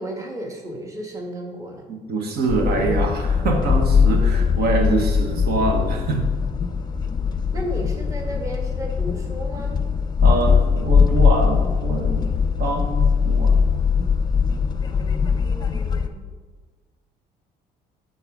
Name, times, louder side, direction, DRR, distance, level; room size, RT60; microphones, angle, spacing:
voice 1, 0.0-1.8 7.5-9.8 14.9-16.3, right 1 dB, 20° right, 1 dB, 1.4 m, -34 dB
voice 2, 1.9-6.3 10.2-12.3 12.6-13.6, right 3 dB, 70° right, 2 dB, 1.4 m, -24 dB
sound 1, 2.5-16.1, left 6 dB, 25° left, 0.7 m, -20 dB
8.9 x 4.1 x 6.3 m, 1.4 s
cardioid pair, 110°, 17 cm